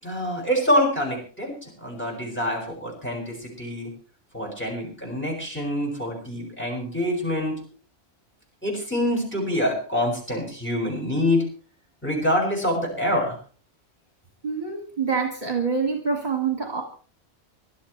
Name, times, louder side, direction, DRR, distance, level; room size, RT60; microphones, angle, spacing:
voice 1, 0.0-1.5 1.8-3.9 4.3-7.5 8.6-11.4 12.0-13.3, left 1 dB, 10° left, -1 dB, 7.1 m, -25 dB
voice 2, 14.4-16.8, right 5 dB, 40° right, 2 dB, 2.1 m, -26 dB
25.0 x 12.5 x 3.4 m, 0.41 s
omnidirectional pair, 1.2 m